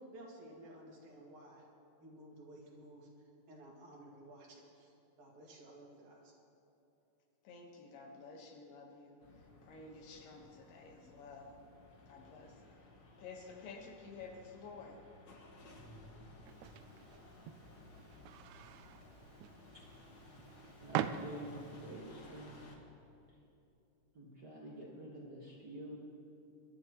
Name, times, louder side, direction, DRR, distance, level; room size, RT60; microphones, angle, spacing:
voice 1, 0.0-1.6 2.0-3.1 3.5-6.3, right 1 dB, 60° right, -3 dB, 3.6 m, -54 dB
voice 2, 7.4-11.6 12.1-12.6 13.2-15.0, left 4 dB, 90° left, 2 dB, 3.1 m, -52 dB
sound 1, 9.2-22.8, left 1 dB, 55° left, 1.1 m, -57 dB
sound 2, 16.4-21.8, right 10 dB, 85° right, 1.6 m, -43 dB
voice 3, 20.8-22.6 24.1-26.0, right 1 dB, 40° right, -5 dB, 1.6 m, -48 dB
23.0 x 12.0 x 3.0 m, 2.8 s
omnidirectional pair, 3.9 m